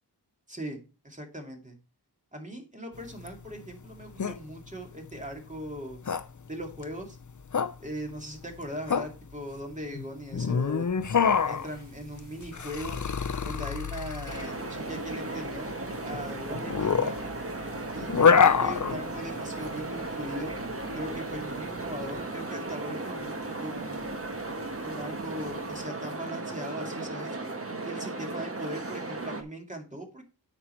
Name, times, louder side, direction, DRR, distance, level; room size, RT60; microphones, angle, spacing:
voice 1, 0.5-0.8 1.0-1.7 2.3-6.0 6.5-7.2 7.8-10.9 11.4-13.0 13.4-15.8 16.0-17.1 17.9-20.6 20.9-24.2 24.8-27.4 27.8-30.2, right 1 dB, 20° right, 2 dB, 2.3 m, -39 dB
sound 1, 2.9-22.2, left 6 dB, 45° left, 0.7 m, -27 dB
sound 2, 11.0-25.8, right 1 dB, 85° right, 2.6 m, -54 dB
sound 3, 14.3-29.4, right 2 dB, 35° right, 1.3 m, -36 dB
8.9 x 5.5 x 4.4 m, 0.32 s
wide cardioid pair, 70°, 41 cm